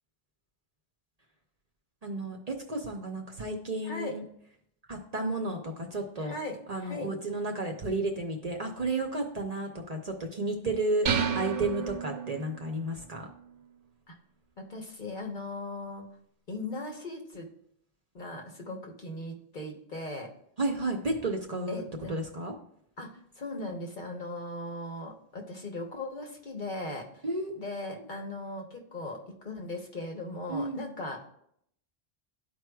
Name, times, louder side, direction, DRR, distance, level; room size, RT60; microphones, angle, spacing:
voice 1, 2.0-4.2 4.9-6.3 6.7-13.3 20.6-21.8 22.1-22.5 27.2-27.5 30.5-30.9, right 2 dB, 45° right, 2 dB, 0.7 m, -32 dB
voice 2, 3.8-4.2 6.2-7.1 14.1-14.2 14.6-16.1 16.5-17.5 18.1-20.3 21.7-22.2 23.0-27.2 27.5-31.3, left 2 dB, 50° left, 1 dB, 1.2 m, -38 dB
sound 1, 11.1-12.7, right 7 dB, 85° right, 0.9 m, -30 dB
12.5 x 4.6 x 2.3 m, 0.70 s
omnidirectional pair, 1.1 m